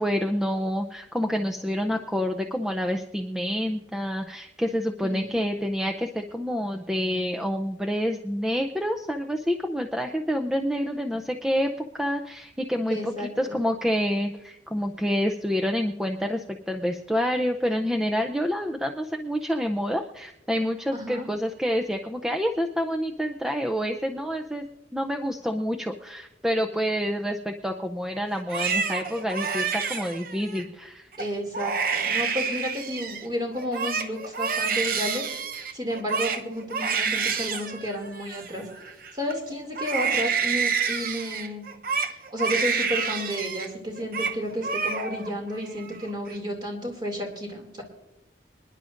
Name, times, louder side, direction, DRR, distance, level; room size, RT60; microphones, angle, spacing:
voice 1, 0.0-24.7 24.9-31.1, equal, 5° right, 4 dB, 0.5 m, -28 dB
voice 2, 5.0-5.4 12.9-13.6 20.9-21.2 31.2-35.3 35.7-38.7 39.1-41.7 42.1-47.8, equal, 25° right, 2 dB, 2.5 m, -32 dB
Crying sobbing, 28.4-30.6 31.1-31.3 31.5-33.3 33.6-39.3 39.7-43.7 44.0-44.4 44.6-45.3 45.7-46.3, right 5 dB, 55° right, 0.8 m, -28 dB
26.5 x 10.5 x 2.5 m, 0.87 s
head